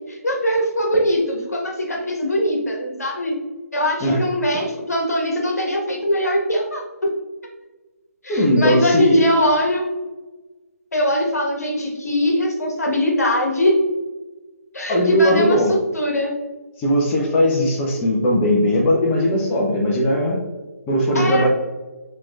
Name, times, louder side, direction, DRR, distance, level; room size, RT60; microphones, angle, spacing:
voice 1, 0.1-3.3 3.7-6.8 8.2-9.9 10.9-13.7 14.7-16.3 21.1-21.5, equal, 80° left, 0 dB, 1.3 m, -21 dB
voice 2, 8.3-9.2 14.9-15.7 16.8-20.4 20.9-21.5, equal, 15° left, -2 dB, 0.7 m, -18 dB
5.9 x 3.0 x 2.4 m, 1.2 s
figure-of-eight pair, 145°, 8 cm